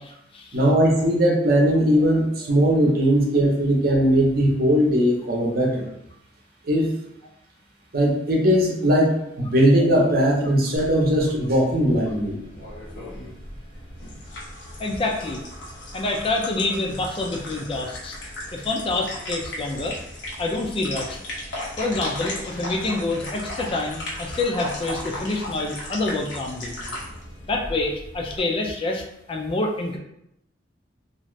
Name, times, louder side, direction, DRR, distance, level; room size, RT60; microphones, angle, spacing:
voice 1, 0.5-5.9 6.7-6.9 7.9-12.4, equal, 55° right, -2 dB, 0.7 m, -19 dB
sound 1, 10.8-28.4, left 1 dB, 90° left, 0.9 m, -36 dB
voice 2, 14.8-15.4 15.9-18.2 18.5-20.0 20.4-21.2 21.8-26.8 27.5-30.0, left 2 dB, 30° left, 1 dB, 0.4 m, -27 dB
2.6 x 2.4 x 3.1 m, 0.77 s
head